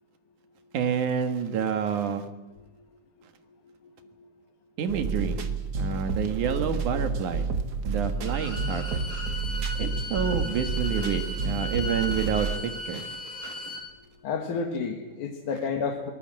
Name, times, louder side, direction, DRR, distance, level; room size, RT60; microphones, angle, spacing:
voice 1, 0.7-2.3 4.8-5.4 5.7-7.5 7.8-9.0 9.8-13.1 13.4-13.5, right 7 dB, 70° right, 8 dB, 3.0 m, -28 dB
sound 1, 4.9-12.6, right 4 dB, 50° right, 1.2 m, -30 dB
Bowed string instrument, 8.2-13.9, left 1 dB, 40° left, 5.0 m, -37 dB
voice 2, 14.2-16.1, left 5 dB, 70° left, 2 dB, 3.1 m, -30 dB
23.5 x 20.0 x 7.7 m, 1.1 s
omnidirectional pair, 3.7 m